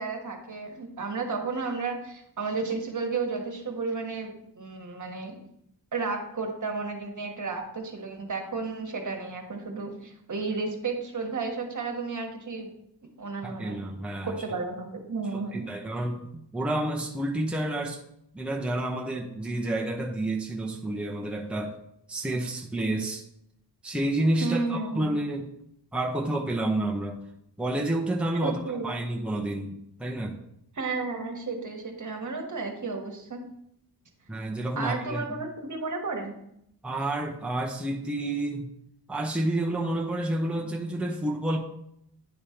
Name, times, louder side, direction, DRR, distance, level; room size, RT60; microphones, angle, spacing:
voice 1, 0.0-5.4 5.9-12.7 13.2-13.8 14.2-15.7 24.4-25.1 28.4-28.9 30.7-33.4 34.7-36.4, right 4 dB, 50° right, 3 dB, 1.4 m, -32 dB
voice 2, 13.4-14.3 15.3-18.0 18.3-21.7 22.1-23.2 23.8-25.5 25.9-27.2 27.6-30.4 34.3-35.3 36.8-38.7 39.1-41.6, right 1 dB, 5° right, 0 dB, 0.8 m, -29 dB
10.0 x 3.4 x 4.4 m, 0.76 s
wide cardioid pair, 95°, 39 cm